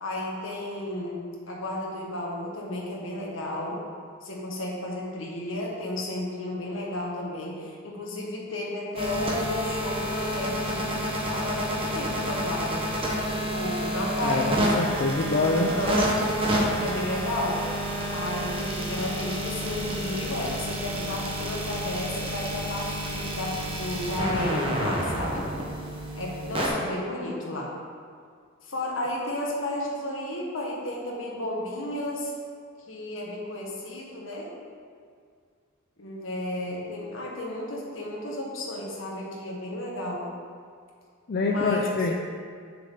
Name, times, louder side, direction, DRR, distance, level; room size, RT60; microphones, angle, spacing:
voice 1, 0.0-3.9 4.2-10.8 11.3-12.9 13.3-15.0 15.5-16.0 16.8-17.7 18.1-25.5 26.1-27.7 28.6-32.3 32.9-34.6 36.0-40.3 41.5-41.9, left 1 dB, 70° left, -3 dB, 1.5 m, -33 dB
sound 1, 9.0-26.7, equal, 25° right, 1.2 m, -29 dB
voice 2, 14.2-15.7 41.3-42.1, left 3 dB, 50° left, 0 dB, 0.5 m, -25 dB
7.4 x 6.7 x 3.8 m, 2.1 s
head